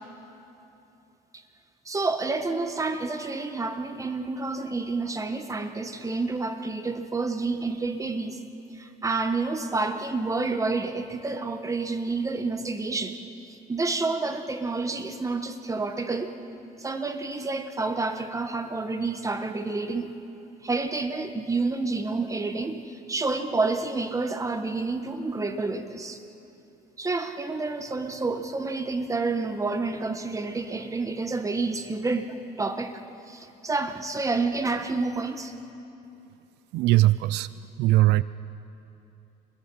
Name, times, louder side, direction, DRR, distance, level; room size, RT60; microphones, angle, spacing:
voice 1, 1.8-8.4 8.7-13.2 13.7-16.3 16.8-20.1 20.6-26.2 27.0-32.9 33.3-35.5, right 3 dB, 20° right, 7 dB, 1.4 m, -29 dB
voice 2, 36.7-37.5 37.8-38.2, right 17 dB, 85° right, 16 dB, 0.5 m, -20 dB
27.5 x 21.0 x 5.7 m, 2.8 s
cardioid pair, 110°, 17 cm